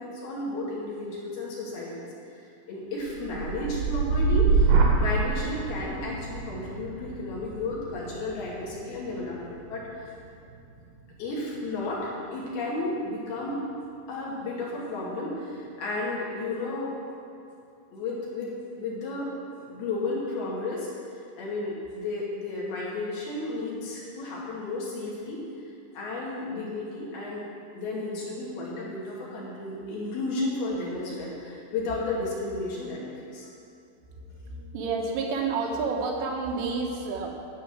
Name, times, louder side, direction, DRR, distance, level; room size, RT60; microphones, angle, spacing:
voice 1, 0.0-2.1 2.7-4.7 5.0-10.2 11.2-13.6 14.1-16.9 17.9-19.3 19.7-20.9 21.4-25.4 25.9-27.5 27.7-33.5, left 2 dB, 60° left, -6 dB, 3.8 m, -33 dB
sound 1, 3.1-11.1 11.6-12.0, right 4 dB, 65° right, 2.4 m, -27 dB
voice 2, 34.1-37.3, right 4 dB, 85° right, 0 dB, 3.8 m, -30 dB
12.5 x 8.2 x 6.2 m, 2.5 s
omnidirectional pair, 5.5 m